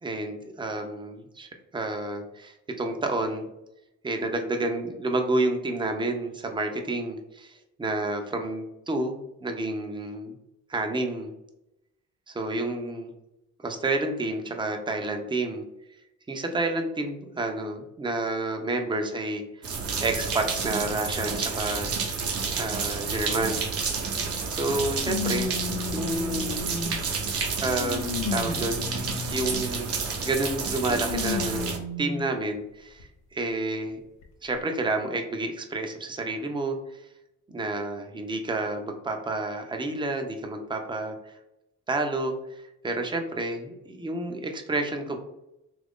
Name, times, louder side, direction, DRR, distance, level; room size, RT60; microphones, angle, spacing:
voice 1, 0.0-3.5 4.0-10.3 10.7-11.3 12.3-13.1 13.6-15.6 16.3-19.4 20.0-21.9 22.5-23.7 24.5-25.5 25.9-26.9 27.6-34.0 34.4-37.1 37.5-41.3 41.9-45.2, right 2 dB, 15° right, 4 dB, 0.5 m, -30 dB
sound 1, 19.6-31.8, right 5 dB, 50° right, 0.7 m, -30 dB
sound 2, 23.8-23.9 25.0-27.1 27.6-29.7 30.9-32.3 33.0-33.1 34.2-34.3, left 5 dB, 75° left, 0.7 m, -33 dB
3.0 x 2.5 x 3.5 m, 0.89 s
cardioid pair, 90°, 30 cm